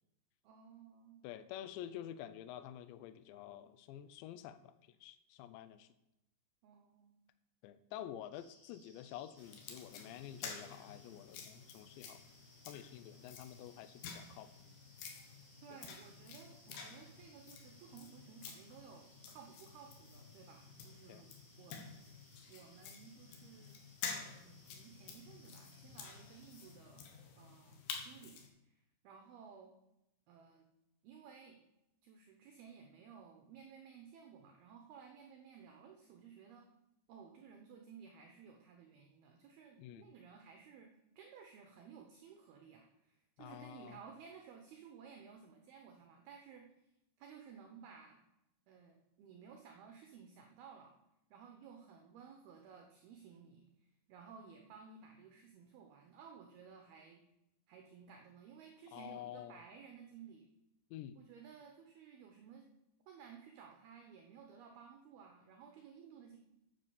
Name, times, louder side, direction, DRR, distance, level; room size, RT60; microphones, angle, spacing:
voice 1, 0.4-1.3 6.6-7.2 15.6-23.8 24.2-27.1 27.4-29.7 30.3-30.7 31.0-31.6 32.0-36.7 37.1-46.9 47.2-48.2 48.7-50.9 51.3-57.2 57.7-60.5 61.1-62.7 63.1-66.4, right 6 dB, 75° right, 4 dB, 2.3 m, -56 dB
voice 2, 1.2-5.9 7.6-12.2 12.7-14.5 15.7-15.8 21.1-21.3 39.8-40.1 43.4-44.0 58.9-59.6 60.9-61.2, left 11 dB, 80° left, 12 dB, 2.6 m, -49 dB
sound 1, 8.3-26.7, equal, 10° right, 1.4 m, -67 dB
sound 2, 9.4-28.5, left 6 dB, 65° left, 2.8 m, -50 dB
9.5 x 7.9 x 6.9 m, 0.87 s
omnidirectional pair, 5.6 m